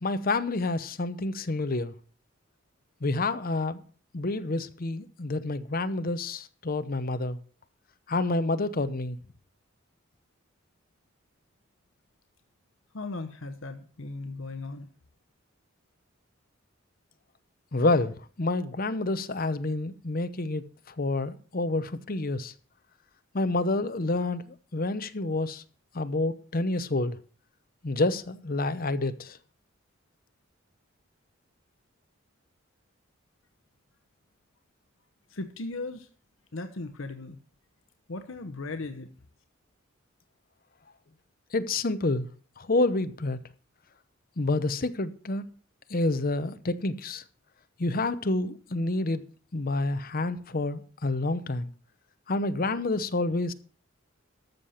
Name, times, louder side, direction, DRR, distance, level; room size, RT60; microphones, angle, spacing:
voice 1, 0.0-1.9 3.0-3.8 4.1-7.4 8.1-9.2 17.7-20.6 21.0-22.5 23.3-25.6 25.9-27.2 27.8-29.4 41.5-42.3 42.6-43.4 44.4-45.5 45.9-47.2 47.8-49.2 49.5-51.7 52.3-53.5, left 2 dB, 45° left, 0.8 m, -28 dB
voice 2, 12.9-14.9 35.3-36.1 36.5-37.4 38.1-39.1, left 3 dB, 70° left, 0.9 m, -37 dB
13.0 x 6.7 x 5.7 m
head